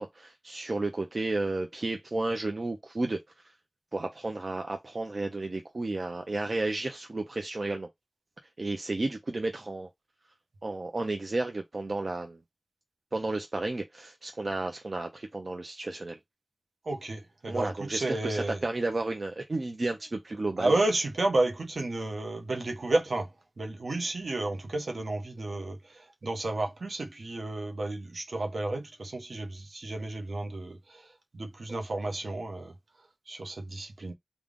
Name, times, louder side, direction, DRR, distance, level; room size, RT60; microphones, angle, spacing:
voice 1, 0.0-3.5 3.9-7.9 8.6-9.9 10.6-12.4 13.1-16.2 17.5-20.7, right 2 dB, 55° right, 0.6 m, -32 dB
voice 2, 16.8-18.7 20.6-23.3 23.6-32.7 33.3-34.1, right 2 dB, 75° right, 0.9 m, -31 dB
3.6 x 2.3 x 3.6 m
wide cardioid pair, 75°, 0 cm